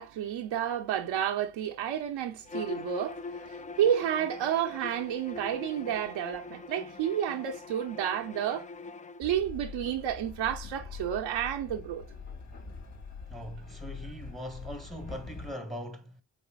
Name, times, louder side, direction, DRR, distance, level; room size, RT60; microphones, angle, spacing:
voice 1, 0.0-8.7 9.2-12.0, right 10 dB, 80° right, 0.7 m, -31 dB
Bowed string instrument, 2.4-9.2, left 3 dB, 20° left, 0.4 m, -42 dB
Train, 9.2-15.5, left 5 dB, 35° left, 3.1 m, -44 dB
voice 2, 13.3-16.2, equal, ahead, 1.0 m, -41 dB
5.3 x 3.8 x 2.3 m
supercardioid pair, 55°, 44 cm